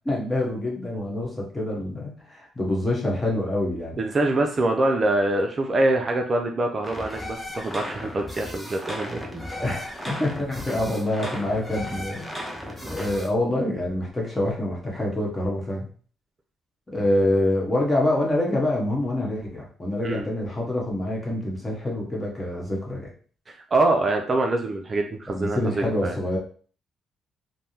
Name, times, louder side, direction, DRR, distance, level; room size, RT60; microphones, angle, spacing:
voice 1, 0.0-4.0 9.5-12.3 12.6-15.9 16.9-23.1 25.3-26.4, left 1 dB, 20° left, -2 dB, 1.2 m, -26 dB
voice 2, 4.0-9.4 20.0-20.3 23.5-26.2, right 2 dB, 35° right, 3 dB, 0.4 m, -24 dB
sound 1, 6.8-13.3, left 1 dB, ahead, 0.7 m, -36 dB
3.3 x 2.1 x 2.8 m, 0.43 s
cardioid pair, 90°, 0 cm